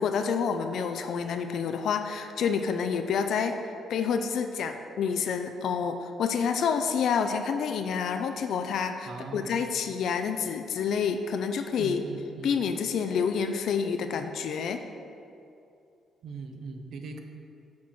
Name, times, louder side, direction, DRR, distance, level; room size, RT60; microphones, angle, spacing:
voice 1, 0.0-12.0 12.4-14.8, left 6 dB, 70° left, 7 dB, 0.4 m, -28 dB
voice 2, 9.1-9.6 11.8-12.5 16.2-17.2, right 4 dB, 65° right, 5 dB, 0.7 m, -40 dB
6.0 x 4.1 x 6.2 m, 2.6 s
cardioid pair, 90°, 0 cm